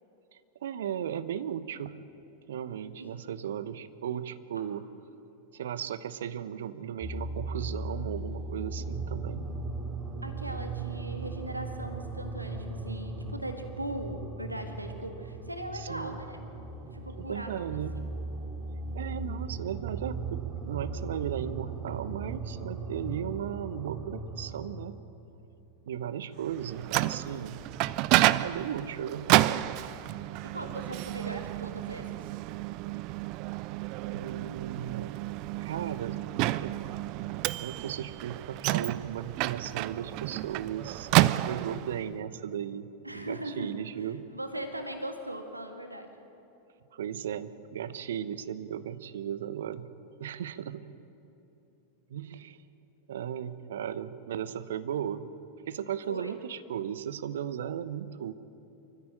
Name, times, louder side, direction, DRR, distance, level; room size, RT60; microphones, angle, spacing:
voice 1, 0.3-2.0 2.5-4.9 5.5-9.5 15.7-16.2 17.2-17.9 18.9-25.0 25.9-27.6 28.4-29.6 34.1-35.1 35.6-36.2 36.6-36.8 37.6-44.2 46.9-49.9 50.2-51.0 52.1-52.6 53.1-55.3 55.7-58.3, right 9 dB, 60° right, 15 dB, 0.9 m, -36 dB
sound 1, 7.0-24.9, right 3 dB, 25° right, 2.6 m, -38 dB
voice 2, 10.2-16.5 16.9-18.1 30.4-32.1 43.0-43.8 44.3-46.3 56.1-56.3, right 1 dB, 85° right, 6 dB, 1.7 m, -39 dB
Microwave oven, 26.5-42.0, right 17 dB, 40° right, 0.5 m, -30 dB
24.5 x 14.0 x 8.7 m, 3.0 s
figure-of-eight pair, 90°, 0 cm